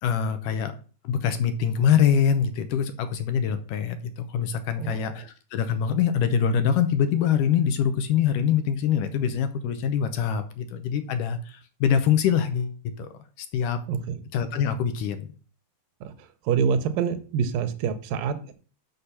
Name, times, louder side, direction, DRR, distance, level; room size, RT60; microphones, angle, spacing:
voice 1, 0.0-0.7 1.0-13.1 13.4-13.8 14.3-15.3, left 8 dB, 75° left, 10 dB, 2.1 m, -24 dB
voice 2, 4.8-5.2 13.9-14.2 16.0-18.5, right 7 dB, 75° right, 9 dB, 2.4 m, -27 dB
6.7 x 6.5 x 5.7 m, 0.38 s
omnidirectional pair, 4.3 m